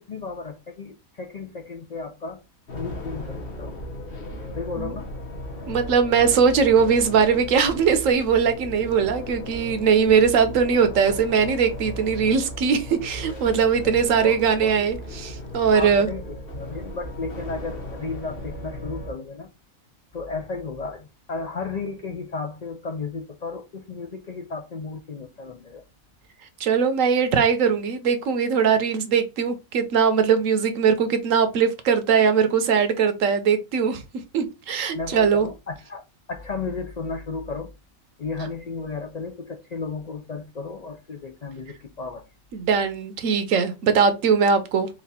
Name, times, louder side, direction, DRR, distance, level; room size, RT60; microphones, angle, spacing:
voice 1, 0.0-2.4 2.7-3.8 4.6-5.1 13.8-14.8 15.7-19.5 20.1-25.8 34.9-36.0 36.3-37.7 38.2-42.2, left 4 dB, 80° left, 0.3 m, -34 dB
sound 1, 2.7-19.1, left 1 dB, 45° left, 1.2 m, -36 dB
voice 2, 5.7-16.1 26.6-34.0 34.3-35.5 42.5-44.9, right 6 dB, 70° right, 1.1 m, -20 dB
4.1 x 2.5 x 4.1 m
omnidirectional pair, 1.5 m